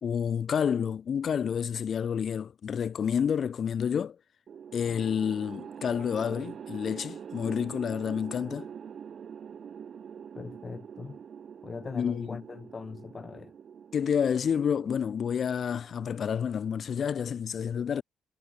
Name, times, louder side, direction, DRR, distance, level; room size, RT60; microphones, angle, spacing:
voice 1, 0.0-4.2 4.7-8.7 11.9-12.4 13.9-18.0, left 7 dB, 60° left, 0.7 m, -29 dB
sound 1, 4.5-16.8, right 7 dB, 60° right, 1.3 m, -45 dB
voice 2, 10.3-11.2 11.6-13.5, left 4 dB, 40° left, 1.6 m, -40 dB
supercardioid pair, 65°, 0 cm